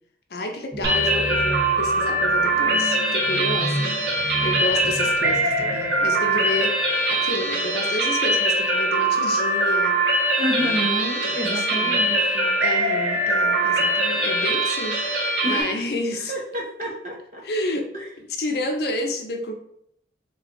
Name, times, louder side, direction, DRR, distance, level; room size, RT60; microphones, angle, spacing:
voice 1, 0.3-9.9 10.5-10.8 11.2-12.0 12.6-16.3 17.4-17.9 18.2-19.5, left 1 dB, 60° left, 4 dB, 0.5 m, -30 dB
sound 1, 0.7-7.3, equal, 25° right, 0.4 m, -34 dB
sound 2, 0.8-15.6, right 1 dB, 80° right, 0.9 m, -22 dB
voice 2, 10.4-12.5 15.4-15.9 16.3-17.4 17.9-18.1, equal, 40° right, -2 dB, 0.9 m, -29 dB
3.3 x 2.3 x 3.8 m, 0.69 s
head